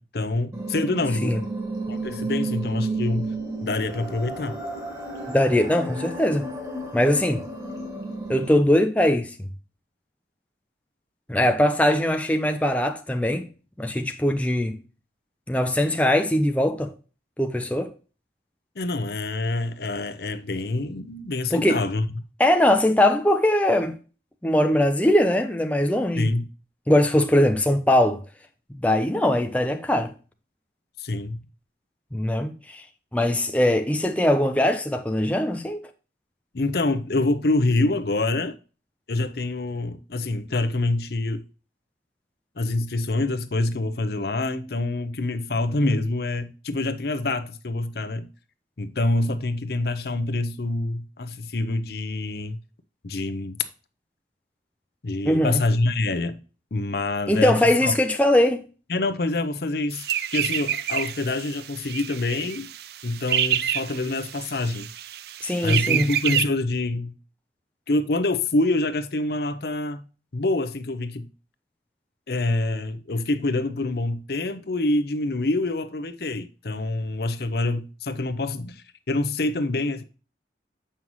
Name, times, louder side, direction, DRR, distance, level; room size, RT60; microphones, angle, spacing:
voice 1, 0.0-1.3 1.9-3.3 3.6-4.6 18.8-22.1 26.2-26.5 31.0-31.4 36.5-38.6 39.1-41.4 42.6-48.3 48.8-52.6 53.0-53.6 55.0-56.4 56.7-57.5 57.8-57.9 58.9-62.7 63.0-64.9 65.6-67.1 67.9-70.0 70.3-71.3 72.3-80.0, left 2 dB, 60° left, 0.7 m, -26 dB
sound 1, 0.5-8.5, right 2 dB, 20° right, 1.7 m, -32 dB
voice 2, 5.3-6.5 6.9-7.4 8.3-9.5 11.3-13.5 13.8-14.8 15.5-16.9 17.4-17.9 21.5-21.8 22.4-23.9 24.4-26.3 26.9-28.2 28.8-30.1 32.1-32.8 33.1-35.8 55.3-55.6 57.3-58.7 65.4-66.1, left 1 dB, 10° left, 0.5 m, -21 dB
sound 2, 59.9-66.5, right 10 dB, 60° right, 0.4 m, -28 dB
7.4 x 5.6 x 3.0 m
head